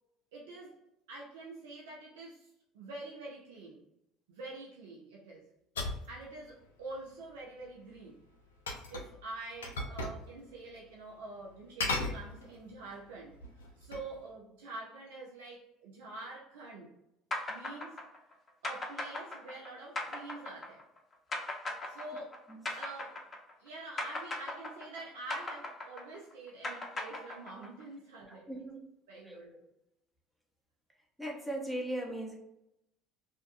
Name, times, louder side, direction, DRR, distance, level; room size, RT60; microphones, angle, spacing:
voice 1, 0.3-0.8 1.1-3.8 4.3-5.5 6.1-8.2 8.9-13.4 13.8-17.0 17.5-18.0 18.6-20.8 21.9-22.4 22.7-23.2 23.6-28.5 29.1-29.7, right 2 dB, 80° right, -4 dB, 0.5 m, -46 dB
sound 1, 5.7-6.1 8.7-9.2 9.6-10.2 10.5-10.6 11.8-12.7 13.3-14.1, left 2 dB, 90° left, 0.4 m, -36 dB
sound 2, 17.3-23.7 24.0-27.8, left 2 dB, 30° left, 0.6 m, -38 dB
voice 2, 28.3-28.9 29.2-29.4 31.2-32.4, right 1 dB, ahead, -1 dB, 0.8 m, -38 dB
2.5 x 2.2 x 2.5 m, 0.85 s
hypercardioid pair, 65°, 0 cm